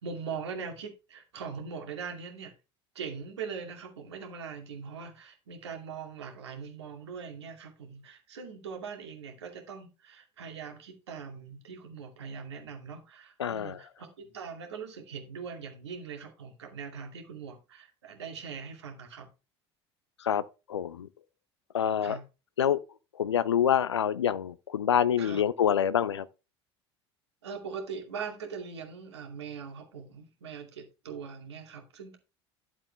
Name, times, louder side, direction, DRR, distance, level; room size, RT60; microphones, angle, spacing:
voice 1, 0.0-2.5 2.9-19.3 22.0-22.2 25.2-25.5 27.4-32.2, right 6 dB, 75° right, 2.5 m, -41 dB
voice 2, 13.4-13.8 20.2-20.4 20.7-21.1 21.7-22.2 22.6-22.8 23.2-26.2, left 9 dB, 80° left, 0.5 m, -26 dB
12.0 x 7.6 x 3.3 m
figure-of-eight pair, 65°, 14 cm